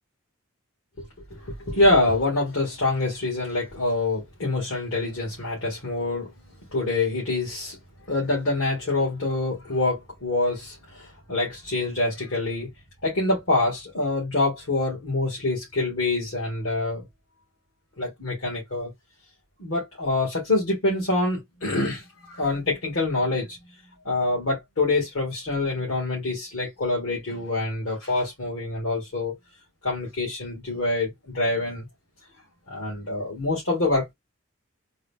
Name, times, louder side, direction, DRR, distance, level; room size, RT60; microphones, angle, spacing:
voice 1, 1.0-6.3 6.7-7.8 8.1-12.7 13.0-17.0 18.0-18.9 19.6-23.6 24.0-29.3 29.8-31.8 32.7-34.1, left 2 dB, 75° left, 2.0 m, -26 dB
3.8 x 2.1 x 3.5 m
head